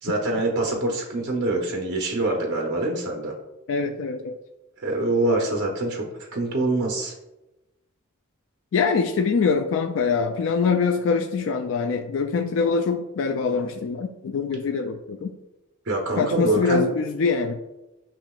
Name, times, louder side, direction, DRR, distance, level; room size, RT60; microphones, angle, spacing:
voice 1, 0.0-3.3 4.8-7.1 15.9-16.9, right 2 dB, 50° right, 0 dB, 0.7 m, -25 dB
voice 2, 3.7-4.4 8.7-15.3 16.2-17.6, left 5 dB, 65° left, 6 dB, 0.3 m, -24 dB
7.3 x 3.0 x 2.3 m, 0.98 s
head